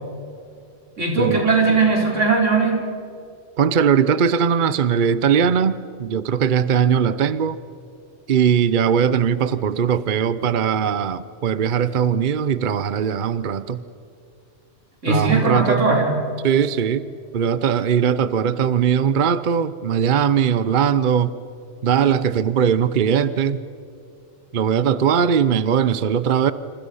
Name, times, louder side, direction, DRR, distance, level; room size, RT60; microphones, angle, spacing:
voice 1, 1.0-2.8 15.0-16.1, right 3 dB, 85° right, -1 dB, 5.3 m, -19 dB
voice 2, 3.6-7.6 8.3-13.8 15.1-15.9 16.4-21.3 21.8-23.6 24.5-26.5, right 7 dB, 50° right, 15 dB, 0.8 m, -20 dB
29.0 x 27.0 x 5.6 m, 2.4 s
omnidirectional pair, 1.2 m